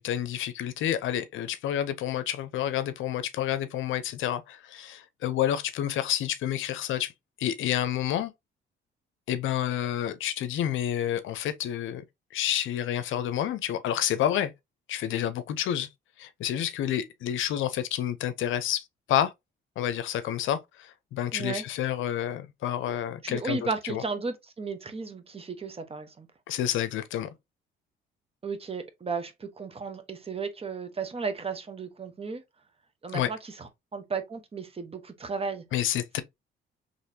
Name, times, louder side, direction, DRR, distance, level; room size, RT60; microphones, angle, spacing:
voice 1, 0.0-7.1 7.4-8.3 9.3-12.0 12.3-14.5 14.9-15.9 16.2-19.3 19.8-24.0 26.5-27.3 33.1-33.3 35.7-36.2, left 11 dB, 80° left, 0.6 m, -29 dB
voice 2, 21.3-21.6 23.2-26.3 28.4-32.4 33.0-35.6, right 4 dB, 30° right, 0.9 m, -34 dB
4.1 x 3.1 x 2.7 m
cardioid pair, 90°, 20 cm